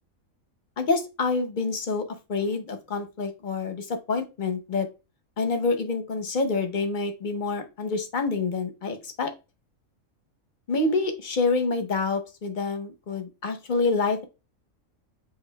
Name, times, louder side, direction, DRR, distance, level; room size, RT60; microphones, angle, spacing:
voice 1, 0.8-2.0 2.3-4.9 5.4-9.3 10.7-14.2, left 3 dB, 45° left, 7 dB, 0.7 m, -27 dB
7.8 x 2.8 x 2.2 m, 0.28 s
omnidirectional pair, 1.5 m